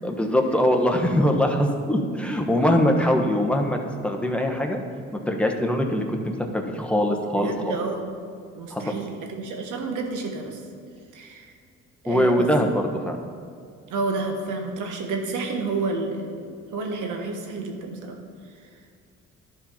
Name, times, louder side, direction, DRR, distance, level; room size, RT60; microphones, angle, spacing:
voice 1, 0.0-4.8 5.1-7.5 8.7-8.9 12.0-13.2, equal, 5° left, 2 dB, 1.2 m, -22 dB
voice 2, 7.3-8.1 8.5-10.6 11.1-11.5 12.0-12.5 13.9-18.2 18.6-18.7, right 3 dB, 80° right, 2 dB, 1.4 m, -30 dB
11.5 x 4.5 x 5.7 m, 2.3 s
supercardioid pair, 75°, 30 cm